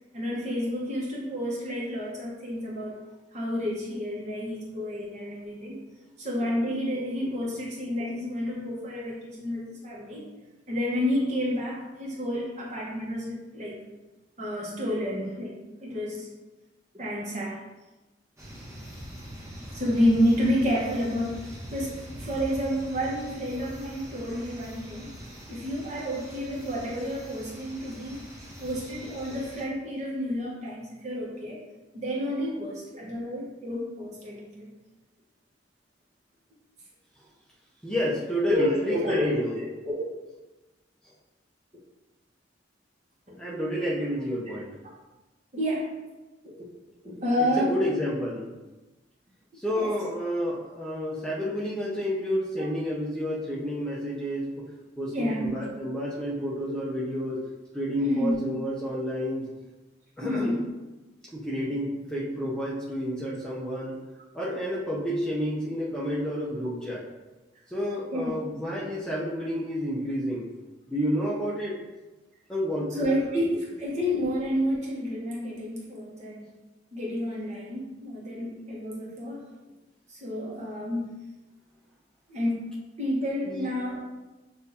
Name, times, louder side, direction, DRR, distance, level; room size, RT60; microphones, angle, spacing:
voice 1, 0.1-2.9 3.3-5.8 6.2-10.2 10.7-13.8 14.4-16.3 16.9-17.6 19.7-21.5 21.7-25.2 25.5-28.2 28.6-31.6 31.9-34.7 38.4-40.0 43.3-43.4 45.5-45.9 46.4-46.7 47.0-47.8 49.7-49.9 52.6-52.7 55.1-55.5 58.0-58.4 60.2-60.6 68.1-68.3 73.0-76.5 76.9-79.5 80.1-81.1 82.3-82.7 83.0-84.0, equal, 40° right, -4 dB, 1.1 m, -30 dB
sound 1, 18.4-29.6, equal, 15° right, 1.0 m, -43 dB
voice 2, 37.8-39.5 43.4-44.8 47.4-48.5 49.6-54.6 55.0-57.4 57.7-59.4 60.2-60.6 61.3-64.0 64.3-67.0 67.7-70.4 70.9-71.8 72.5-73.0 83.5-83.7, equal, 5° left, -6 dB, 0.6 m, -30 dB
6.5 x 2.7 x 2.8 m, 1.1 s
head